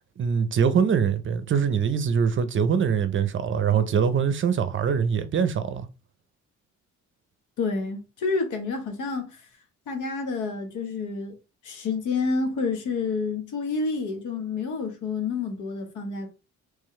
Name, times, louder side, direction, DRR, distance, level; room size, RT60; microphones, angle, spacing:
voice 1, 0.2-5.9, right 7 dB, 40° right, 0.6 m, -23 dB
voice 2, 7.6-9.4 9.9-11.4 11.6-16.3, left 4 dB, 80° left, 1.1 m, -29 dB
3.7 x 3.2 x 3.1 m
cardioid pair, 90°, 30 cm